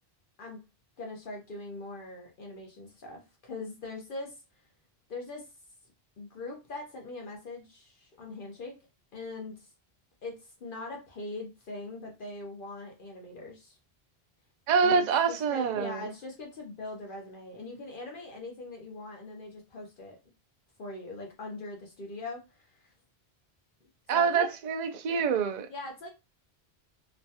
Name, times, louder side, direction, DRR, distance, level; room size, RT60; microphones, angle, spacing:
voice 1, 1.0-4.4 5.1-5.5 6.2-8.8 9.1-9.7 10.2-13.8 14.8-20.2 20.8-22.9 24.1-24.5 25.7-26.1, left 2 dB, 60° left, 0.8 m, -41 dB
voice 2, 14.7-16.1 24.1-25.7, right 6 dB, 55° right, 0.5 m, -26 dB
3.1 x 2.2 x 2.7 m
omnidirectional pair, 1.1 m